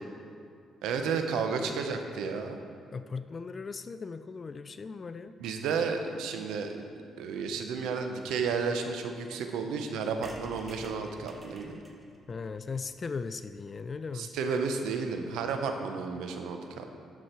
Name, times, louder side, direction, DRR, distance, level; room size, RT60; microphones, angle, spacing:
voice 1, 0.8-2.6 5.4-6.7 7.2-11.8 14.1-17.0, right 5 dB, 90° right, 5 dB, 0.8 m, -32 dB
voice 2, 2.9-5.4 12.3-14.3, left 4 dB, 35° left, 11 dB, 0.3 m, -38 dB
sound 1, 10.2-13.9 14.3-14.4 14.6-14.7 14.9-15.0 15.2-15.5, right 1 dB, 20° right, 1.1 m, -52 dB
12.0 x 6.1 x 4.4 m, 2.4 s
cardioid pair, 90°, 0 cm